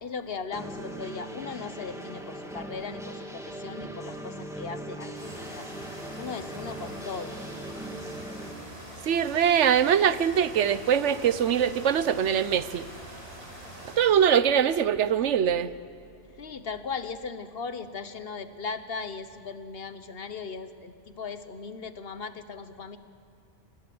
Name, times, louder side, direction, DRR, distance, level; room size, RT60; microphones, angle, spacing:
voice 1, 0.0-5.1 5.5-5.7 6.2-7.4 16.4-23.0, left 5 dB, 60° left, 11 dB, 1.3 m, -38 dB
sound 1, 0.5-8.5, right 1 dB, 5° right, 2.2 m, -39 dB
sound 2, 5.1-14.0, right 1 dB, 65° right, 5.8 m, -44 dB
voice 2, 9.0-12.9 14.0-15.7, right 8 dB, 85° right, 15 dB, 1.1 m, -23 dB
26.5 x 19.5 x 7.8 m, 2.7 s
omnidirectional pair, 1.2 m